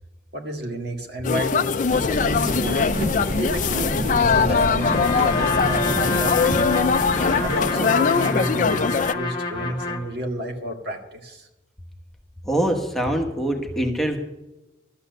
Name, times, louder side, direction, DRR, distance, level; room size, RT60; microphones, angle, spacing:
voice 1, 0.3-1.7 2.1-3.1 3.4-6.8 7.4-11.4, equal, 60° right, 3 dB, 1.9 m, -30 dB
sound 1, 1.2-9.1, left 5 dB, 45° left, 0.4 m, -22 dB
sound 2, 1.9-7.7, equal, 35° right, 0.9 m, -29 dB
Trumpet, 4.8-10.1, left 3 dB, 25° left, 1.3 m, -27 dB
voice 2, 12.4-14.2, right 1 dB, ahead, 1 dB, 1.2 m, -23 dB
12.5 x 8.4 x 6.6 m, 0.98 s
head